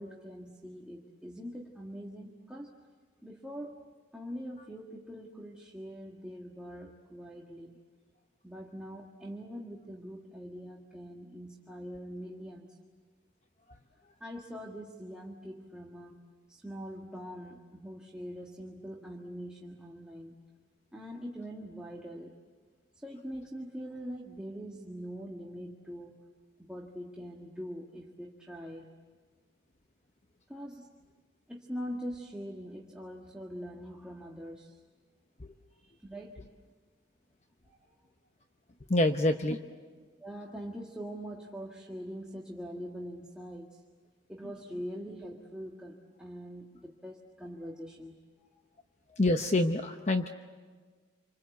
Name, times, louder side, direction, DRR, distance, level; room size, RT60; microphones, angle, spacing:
voice 1, 0.0-2.7 3.2-3.8 4.1-7.8 8.4-12.8 14.2-16.2 16.5-20.4 20.9-22.4 22.9-26.1 26.6-28.9 30.5-30.9 31.5-34.8 35.7-36.4 37.6-37.9 40.2-43.8 44.3-48.5, equal, 5° right, -2 dB, 1.7 m, -43 dB
voice 2, 38.9-39.6 49.2-50.3, left 2 dB, 35° left, 6 dB, 0.9 m, -26 dB
29.0 x 25.5 x 8.1 m, 1.5 s
head